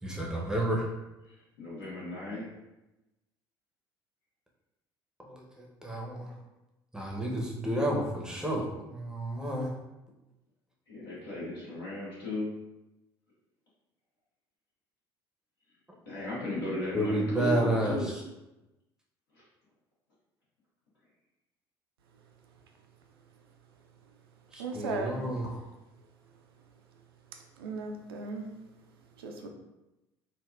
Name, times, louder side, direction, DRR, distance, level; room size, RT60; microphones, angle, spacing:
voice 1, 0.0-0.9 5.2-6.3 6.9-9.7 16.9-18.1 24.5-25.6, right 1 dB, 5° right, -2 dB, 0.7 m, -31 dB
voice 2, 1.2-2.5 10.9-12.5 16.0-18.1 19.3-19.5, left 2 dB, 70° left, -8 dB, 1.2 m, -36 dB
voice 3, 24.6-25.3 27.6-28.5 29.2-29.5, right 4 dB, 75° right, 3 dB, 0.4 m, -36 dB
3.5 x 2.2 x 2.3 m, 0.98 s
figure-of-eight pair, 60°, 12 cm